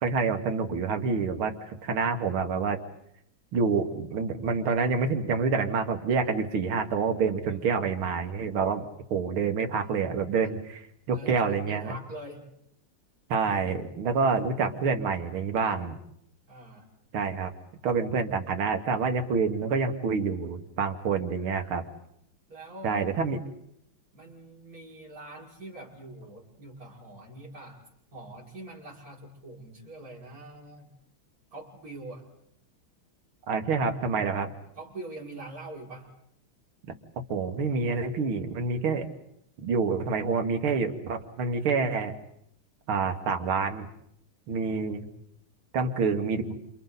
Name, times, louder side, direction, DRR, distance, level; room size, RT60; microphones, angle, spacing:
voice 1, 0.0-2.8 3.5-8.8 9.1-12.0 13.3-15.9 17.1-17.5 17.8-21.8 22.8-23.4 33.5-34.5 37.3-39.1 39.6-42.1 42.9-43.9 44.5-45.1 45.7-46.5, right 5 dB, 90° right, 5 dB, 2.5 m, -27 dB
voice 2, 7.4-8.2 11.1-12.5 16.5-16.9 22.5-23.1 24.1-27.8 28.1-30.9 31.5-32.3 34.8-36.1, right 2 dB, 40° right, -4 dB, 6.5 m, -44 dB
29.0 x 29.0 x 4.1 m, 0.74 s
omnidirectional pair, 2.2 m